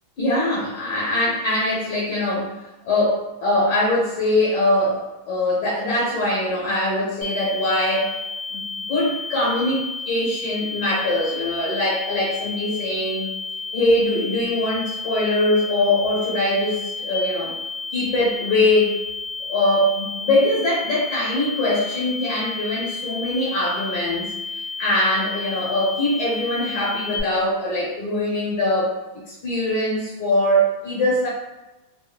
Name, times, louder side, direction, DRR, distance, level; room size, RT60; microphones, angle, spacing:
voice 1, 0.2-2.5 2.9-8.1 8.5-8.6 8.9-13.3 13.7-17.5 17.9-18.9 19.5-24.3 24.8-31.3, left 1 dB, 65° left, -8 dB, 1.6 m, -22 dB
sound 1, 7.2-27.2, left 4 dB, 25° right, 0.7 m, -32 dB
3.4 x 2.2 x 2.2 m, 1.0 s
omnidirectional pair, 2.1 m